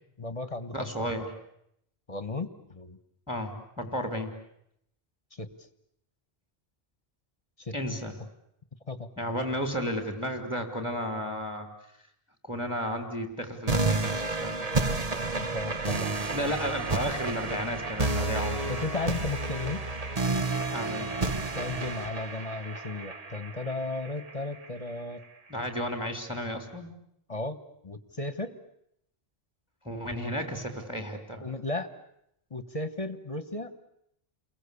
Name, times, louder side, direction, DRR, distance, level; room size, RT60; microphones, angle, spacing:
voice 1, 0.2-0.9 2.1-3.0 5.3-5.5 7.6-8.0 8.9-9.1 15.4-16.1 18.7-19.8 21.5-25.2 27.3-27.6 27.8-28.6 31.4-31.9 32.5-33.7, left 2 dB, 35° left, 11 dB, 1.5 m, -35 dB
voice 2, 0.7-1.3 3.3-4.3 7.7-8.2 9.2-11.7 12.4-14.6 16.3-18.8 20.7-21.2 25.5-26.9 29.9-31.5, equal, 5° right, 6 dB, 3.4 m, -33 dB
Distorted Stabs, 13.7-24.7, right 3 dB, 40° right, 1.3 m, -30 dB
29.5 x 22.0 x 8.4 m, 0.75 s
omnidirectional pair, 1.0 m